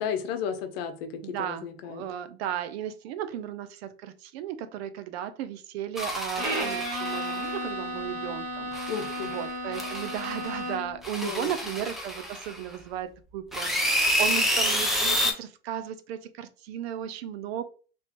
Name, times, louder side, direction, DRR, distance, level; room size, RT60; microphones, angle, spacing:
voice 1, 0.0-2.0 8.9-9.3 11.2-11.5, left 7 dB, 70° left, 7 dB, 0.8 m, -33 dB
voice 2, 1.2-17.6, right 10 dB, 80° right, 11 dB, 0.6 m, -35 dB
sound 1, 6.0-7.5 8.7-9.4 9.7-10.6 11.0-12.7 13.5-15.3, equal, ahead, 0.4 m, -28 dB
Bowed string instrument, 6.4-11.0, right 1 dB, 25° right, 1.2 m, -33 dB
3.1 x 3.0 x 2.9 m, 0.38 s
supercardioid pair, 155°, 31 cm